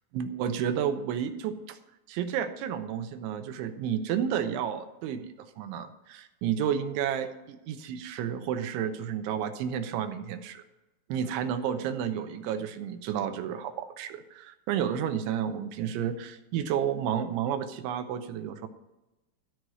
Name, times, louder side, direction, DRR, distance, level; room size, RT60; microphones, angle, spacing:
voice 1, 0.1-1.8 2.1-10.6 11.1-18.7, right 9 dB, 85° right, 8 dB, 3.1 m, -31 dB
14.0 x 4.8 x 9.1 m, 0.97 s
omnidirectional pair, 5.5 m